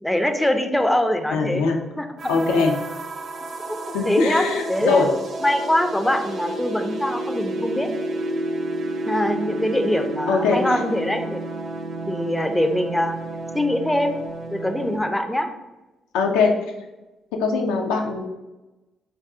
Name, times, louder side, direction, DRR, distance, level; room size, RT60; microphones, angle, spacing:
voice 1, 0.0-1.6 2.0-2.4 4.1-5.0 5.4-7.9 9.1-11.4 12.1-13.2 13.5-14.2 14.5-15.5, left 1 dB, 10° left, 6 dB, 0.4 m, -23 dB
voice 2, 1.3-1.8 2.3-2.7 3.9-5.1 10.3-10.6 16.1-16.6 17.4-18.2, left 4 dB, 80° left, 2 dB, 0.3 m, -21 dB
sound 1, 2.2-15.0, right 1 dB, 60° right, 0.4 m, -31 dB
2.4 x 2.2 x 3.6 m, 1.0 s
hypercardioid pair, 45°, 0 cm